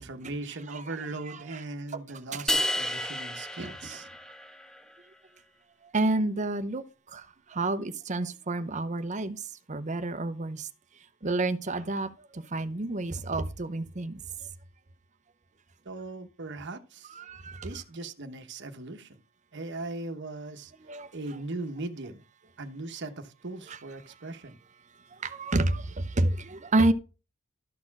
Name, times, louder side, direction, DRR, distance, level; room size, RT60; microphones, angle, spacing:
voice 1, 0.0-4.1 15.8-17.2 17.6-19.2 19.5-20.7 21.1-22.2 22.6-24.6, right 2 dB, 55° right, 1.1 m, -39 dB
voice 2, 1.3-1.6 2.3-2.4 3.6-3.7 5.8-6.8 7.1-9.4 9.7-10.7 11.2-14.2 17.1-17.7 20.9-21.1 23.7-23.8 25.2-26.9, right 2 dB, 35° right, 0.7 m, -29 dB
sound 1, 2.5-4.8, left 1 dB, 5° left, 0.4 m, -31 dB
12.5 x 4.4 x 5.9 m
head